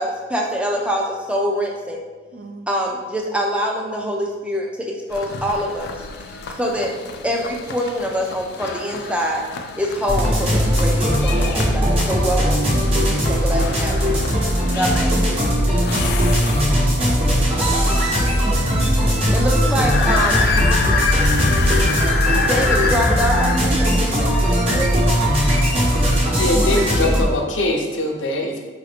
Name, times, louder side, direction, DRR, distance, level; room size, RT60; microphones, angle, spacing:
voice 1, 0.0-2.0 2.7-5.9 6.6-6.9 7.2-9.4 9.8-14.2 14.7-15.4 19.3-20.5 22.5-24.9, equal, 5° right, 0 dB, 0.4 m, -24 dB
voice 2, 2.3-2.6 14.5-15.5 16.0-16.8, right 2 dB, 60° right, 4 dB, 0.5 m, -37 dB
sound 1, 5.1-17.0 19.7-23.6, left 5 dB, 55° left, 0.3 m, -27 dB
sound 2, 10.1-27.2, equal, 35° right, 0.9 m, -19 dB
voice 3, 26.4-28.6, left 2 dB, 85° left, 2 dB, 0.7 m, -22 dB
4.8 x 2.6 x 3.4 m, 1.5 s
head